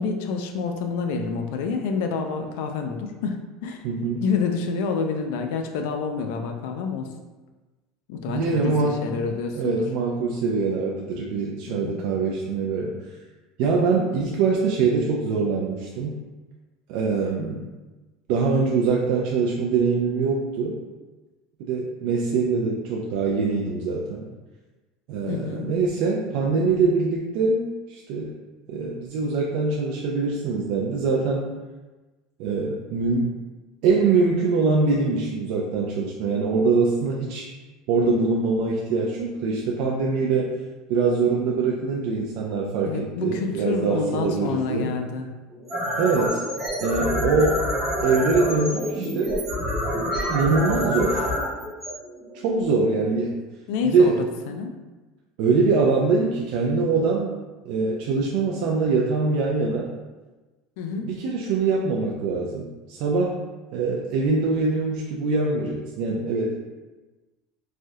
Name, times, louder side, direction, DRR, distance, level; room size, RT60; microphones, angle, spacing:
voice 1, 0.0-3.8 4.2-7.1 8.1-9.9 11.7-12.0 13.8-13.9 25.3-25.7 42.8-45.4 53.7-54.7 60.8-61.1, left 5 dB, 70° left, 5 dB, 0.3 m, -28 dB
voice 2, 3.8-4.2 8.3-9.1 9.5-12.9 13.6-16.2 16.9-17.7 18.3-20.8 21.6-24.2 25.1-28.3 28.7-31.5 32.4-33.3 33.8-37.5 37.9-40.5 40.9-44.9 46.0-46.4 46.8-47.6 48.0-49.4 50.1-51.2 52.4-53.3 53.8-54.2 55.4-57.4 57.7-59.9 61.0-63.3 63.7-66.6, right 4 dB, 55° right, -3 dB, 0.3 m, -23 dB
sound 1, 45.5-52.6, equal, 15° right, 0.8 m, -27 dB
3.2 x 2.3 x 2.7 m, 1.2 s
cardioid pair, 165°, 0 cm